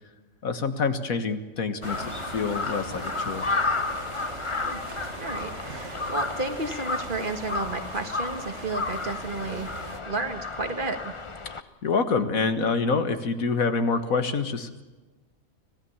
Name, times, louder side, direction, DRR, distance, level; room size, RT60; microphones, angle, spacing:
voice 1, 0.4-3.5 11.8-14.8, left 4 dB, 85° left, 9 dB, 2.0 m, -26 dB
Crow, 1.8-11.6, left 3 dB, 25° left, 0.8 m, -32 dB
sound 1, 1.8-10.0, right 4 dB, 55° right, 1.7 m, -41 dB
voice 2, 5.2-9.8 10.1-11.2, right 3 dB, 40° right, 7 dB, 1.8 m, -32 dB
25.5 x 17.5 x 7.2 m, 1.2 s
omnidirectional pair, 1.4 m